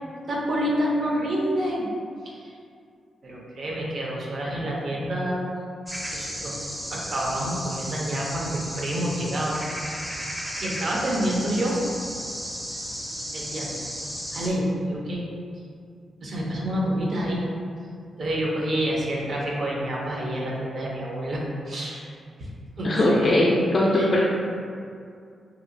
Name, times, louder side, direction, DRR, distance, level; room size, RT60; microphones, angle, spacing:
voice 1, 0.3-1.9 2.2-2.5 3.2-5.4 6.1-6.6 6.9-9.6 10.5-11.8 13.3-13.7 14.3-15.2 16.2-17.4 18.2-21.4 21.7-22.1 22.4-22.5 22.8-23.3 23.9-24.1, equal, 60° right, -3 dB, 0.6 m, -28 dB
sound 1, 5.9-14.5, equal, 10° right, 0.5 m, -34 dB
voice 2, 22.8-24.2, left 1 dB, 45° left, -5 dB, 0.4 m, -20 dB
2.8 x 2.3 x 2.5 m, 2.3 s
cardioid pair, 65°, 0 cm